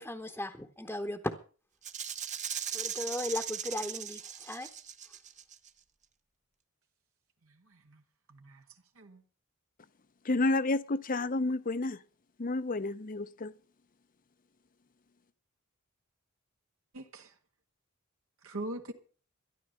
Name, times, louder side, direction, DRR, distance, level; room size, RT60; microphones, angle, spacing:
voice 1, 0.0-1.3 2.7-4.7, left 1 dB, 10° left, 1.0 m, -36 dB
Rattle (instrument), 1.8-5.7, right 8 dB, 35° right, 1.0 m, -38 dB
voice 2, 7.7-8.0 8.3-8.6 9.0-9.2 16.9-17.3 18.4-18.9, right 1 dB, 75° right, 1.6 m, -42 dB
voice 3, 10.2-12.0 12.4-13.5, left 2 dB, 40° left, 0.7 m, -30 dB
13.5 x 11.0 x 6.4 m
head